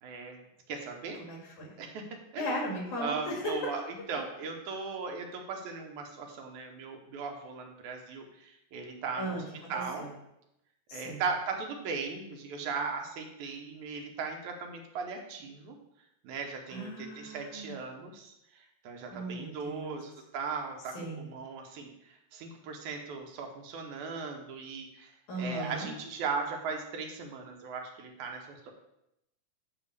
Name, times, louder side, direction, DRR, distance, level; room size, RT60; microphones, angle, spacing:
voice 1, 0.0-1.2 1.8-2.5 3.0-9.4 9.7-10.1 10.9-15.8 16.2-28.7, right 5 dB, 75° right, 3 dB, 2.2 m, -38 dB
voice 2, 1.2-1.7 2.4-3.5 9.2-10.1 10.9-11.2 16.7-17.8 19.1-20.0 20.9-21.3 25.3-25.9, equal, 70° left, -2 dB, 3.5 m, -37 dB
9.0 x 3.1 x 6.5 m, 0.84 s
omnidirectional pair, 3.6 m